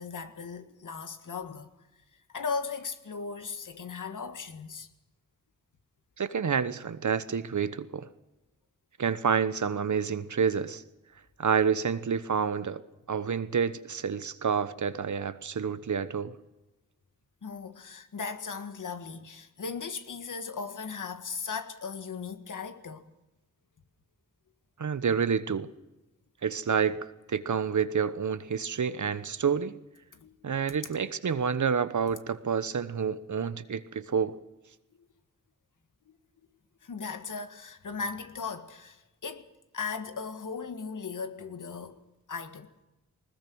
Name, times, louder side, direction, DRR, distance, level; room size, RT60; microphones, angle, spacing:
voice 1, 0.0-1.7 2.3-4.9 17.4-23.1 30.1-30.4 36.1-36.2 36.8-39.5 39.7-42.7, left 5 dB, 70° left, 1.8 m, -37 dB
voice 2, 6.2-8.1 9.0-10.8 11.4-12.8 13.1-16.4 24.8-25.7 26.4-29.8 30.4-34.4, right 6 dB, 65° right, 1.1 m, -28 dB
20.5 x 20.0 x 6.3 m
cardioid pair, 65°, 32 cm